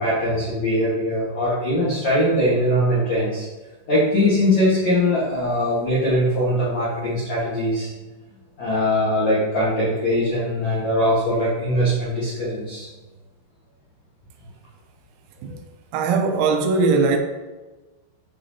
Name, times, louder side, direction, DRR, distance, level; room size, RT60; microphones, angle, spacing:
voice 1, 0.0-3.4 3.9-7.9 8.6-12.9 15.5-15.6, left 1 dB, 75° left, 1.6 m, -21 dB
voice 2, 15.9-17.2, right 4 dB, 85° right, 3.0 m, -20 dB
9.1 x 3.7 x 2.7 m
omnidirectional pair, 5.6 m